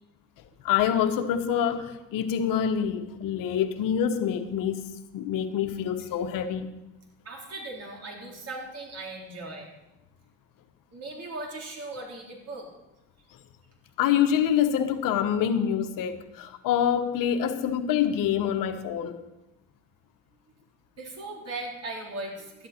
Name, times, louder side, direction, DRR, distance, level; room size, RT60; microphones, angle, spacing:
voice 1, 0.6-4.9 5.1-6.7 14.0-19.2, left 9 dB, 65° left, 8 dB, 1.1 m, -26 dB
voice 2, 7.2-9.7 10.9-12.7 21.0-22.7, right 2 dB, 45° right, -1 dB, 3.9 m, -38 dB
12.5 x 11.0 x 4.3 m, 0.94 s
supercardioid pair, 100°, 36 cm